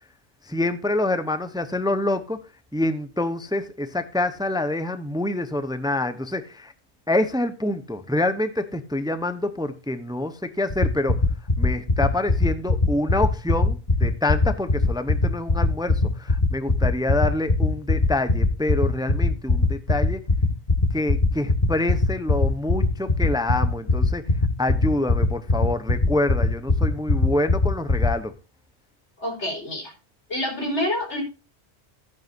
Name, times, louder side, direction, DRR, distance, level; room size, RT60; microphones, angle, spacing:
voice 1, 0.5-2.4 2.7-6.7 7.1-11.2 11.6-20.2 20.9-24.2 24.6-28.3, left 2 dB, 5° right, 0.8 m, -26 dB
sound 1, 10.7-28.1, left 2 dB, 35° left, 1.7 m, -18 dB
voice 2, 29.2-29.9 30.3-31.2, left 1 dB, 90° left, 5.2 m, -27 dB
14.5 x 9.4 x 2.6 m
omnidirectional pair, 1.2 m